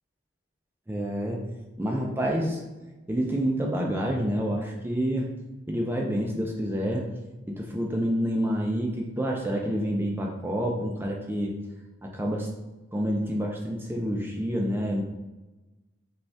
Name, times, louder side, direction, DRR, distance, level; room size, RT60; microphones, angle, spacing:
voice 1, 0.9-1.4 1.8-2.6 3.1-5.3 5.7-7.1 7.5-11.5 12.0-12.5 12.9-15.0, equal, 10° right, -1 dB, 0.3 m, -28 dB
5.0 x 2.3 x 3.3 m, 1.1 s
head